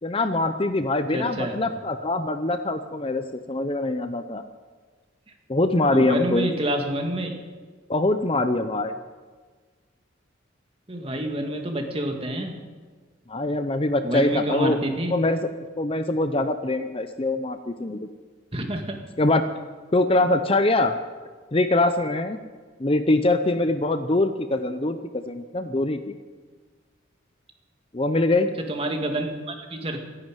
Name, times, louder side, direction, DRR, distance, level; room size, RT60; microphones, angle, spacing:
voice 1, 0.0-4.4 5.5-6.5 7.9-8.9 13.3-14.8 15.1-15.4 15.8-18.1 19.2-19.5 19.9-20.9 21.5-22.4 22.8-26.0 27.9-28.5, left 2 dB, 30° left, 9 dB, 0.7 m, -23 dB
voice 2, 1.1-1.6 5.9-7.4 10.9-12.5 14.0-15.1 18.5-19.0 28.6-30.0, right 1 dB, 30° right, 3 dB, 2.0 m, -28 dB
14.0 x 11.0 x 9.1 m, 1.4 s
head